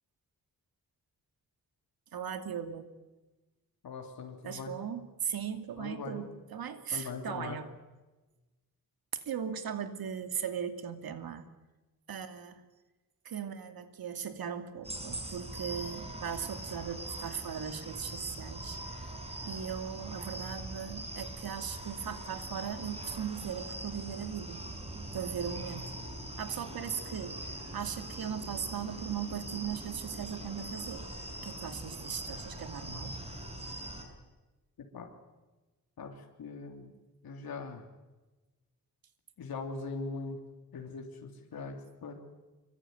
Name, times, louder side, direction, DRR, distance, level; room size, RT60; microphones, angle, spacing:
voice 1, 2.1-2.9 4.4-7.7 9.3-11.5 12.1-12.6 13.2-18.8 19.5-24.6 25.0-25.9 26.4-27.4 27.7-31.1 31.4-33.2, right 8 dB, 90° right, 8 dB, 2.6 m, -38 dB
voice 2, 3.8-4.7 5.8-6.3 6.9-7.6 34.9-35.1 36.0-36.9 37.2-37.9 39.4-40.4 40.7-42.2, left 4 dB, 85° left, 2 dB, 3.3 m, -41 dB
sound 1, 14.8-34.0, right 1 dB, 15° right, 6.0 m, -42 dB
26.5 x 23.0 x 9.4 m, 1.2 s
wide cardioid pair, 130°, 35 cm